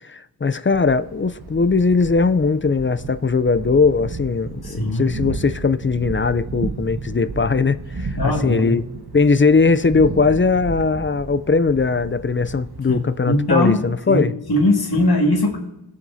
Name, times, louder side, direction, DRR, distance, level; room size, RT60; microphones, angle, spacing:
voice 1, 0.0-8.8 9.1-14.3, left 4 dB, 30° left, 0.5 m, -19 dB
Thunder, 0.7-14.0, right 4 dB, 60° right, 1.3 m, -34 dB
voice 2, 4.6-5.0 8.2-8.8 12.9-13.0 13.2-13.8 14.1-15.6, left 1 dB, 60° left, 2.1 m, -20 dB
21.0 x 7.4 x 2.7 m
cardioid pair, 45°, 43 cm